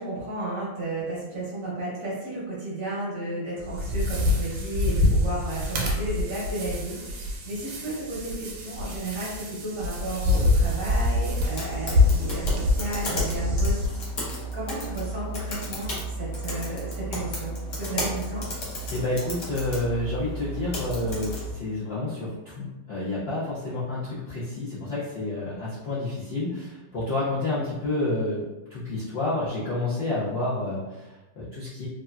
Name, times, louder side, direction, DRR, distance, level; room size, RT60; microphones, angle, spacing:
voice 1, 0.0-13.8 14.4-18.4, right 1 dB, 55° right, -7 dB, 0.9 m, -33 dB
sound 1, 3.6-13.9, left 2 dB, 80° right, 1.3 m, -26 dB
sound 2, 10.8-21.5, right 1 dB, 55° left, 0.9 m, -33 dB
voice 2, 18.9-28.4 28.7-31.9, left 2 dB, 80° left, -9 dB, 0.5 m, -29 dB
3.3 x 2.5 x 2.2 m, 1.1 s
omnidirectional pair, 2.1 m